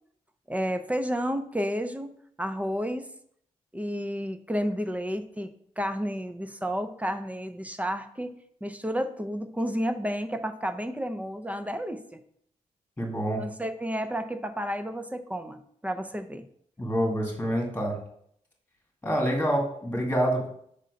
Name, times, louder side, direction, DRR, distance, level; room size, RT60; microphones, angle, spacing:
voice 1, 0.5-3.1 3.7-8.4 8.6-12.2 13.4-16.5, equal, 10° right, 9 dB, 0.6 m, -31 dB
voice 2, 13.0-13.4 16.8-18.0 19.0-20.5, equal, 15° left, 1 dB, 2.0 m, -27 dB
5.6 x 3.8 x 5.1 m, 0.66 s
cardioid pair, 80°, 13 cm